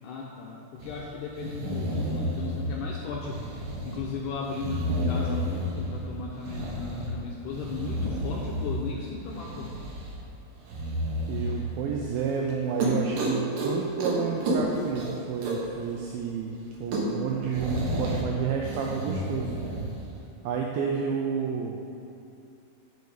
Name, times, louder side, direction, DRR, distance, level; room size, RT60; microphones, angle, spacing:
voice 1, 0.0-9.7, left 5 dB, 80° left, -2 dB, 1.9 m, -36 dB
sound 1, 0.8-0.9 1.3-2.8 3.2-4.0 4.4-5.9 6.4-7.1 7.5-8.9 9.3-10.2 10.7-11.5 12.0-12.2 12.5-12.6 12.8-13.7 14.0-14.2 14.4-15.7 16.1-16.2 16.4-16.5 16.7-18.2 18.6-19.9, equal, 65° right, 2.7 m, -31 dB
voice 2, 11.3-19.5 20.4-21.8, right 6 dB, 80° right, 0 dB, 2.3 m, -30 dB
11.0 x 5.3 x 4.9 m, 2.7 s
omnidirectional pair, 4.4 m